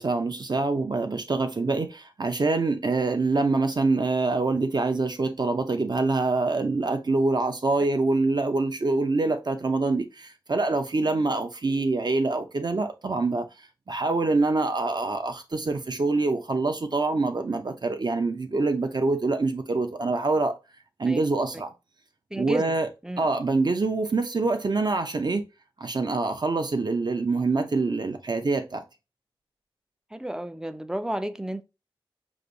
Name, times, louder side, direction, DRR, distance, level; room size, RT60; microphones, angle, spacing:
voice 1, 0.0-13.5 13.9-20.5 21.0-21.7 22.3-22.9 23.2-25.4 25.8-28.8, right 3 dB, 50° right, 0.7 m, -25 dB
voice 2, 22.3-22.6 23.0-23.3 30.1-31.6, right 1 dB, 5° right, 0.4 m, -31 dB
5.2 x 2.6 x 3.9 m
wide cardioid pair, 85°, 9 cm